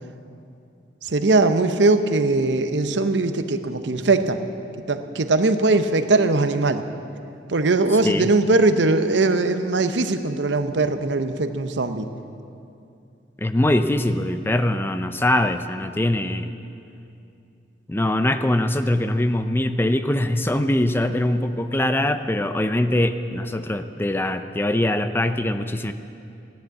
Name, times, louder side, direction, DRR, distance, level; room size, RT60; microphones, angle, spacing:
voice 1, 1.0-4.4 4.9-6.8 7.5-12.1, right 3 dB, 70° right, 9 dB, 0.8 m, -20 dB
voice 2, 13.4-16.5 17.9-25.9, left 1 dB, 10° left, 9 dB, 0.5 m, -22 dB
15.5 x 10.5 x 8.3 m, 2.6 s
head